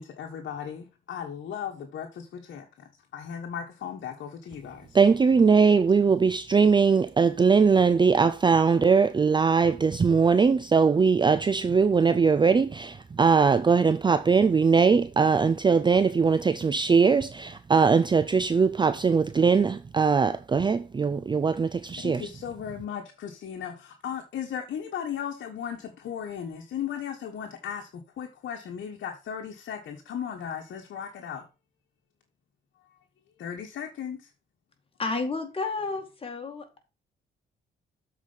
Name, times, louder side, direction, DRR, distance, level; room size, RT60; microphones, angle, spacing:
voice 1, 0.0-2.7 3.1-5.0 22.0-27.9 28.2-31.4 33.4-34.3, left 8 dB, 70° left, 1.3 m, -36 dB
voice 2, 4.9-22.3, right 5 dB, 25° right, 0.4 m, -21 dB
voice 3, 35.0-36.6, left 3 dB, 30° left, 2.3 m, -31 dB
7.4 x 4.6 x 5.5 m
cardioid pair, 75°, 20 cm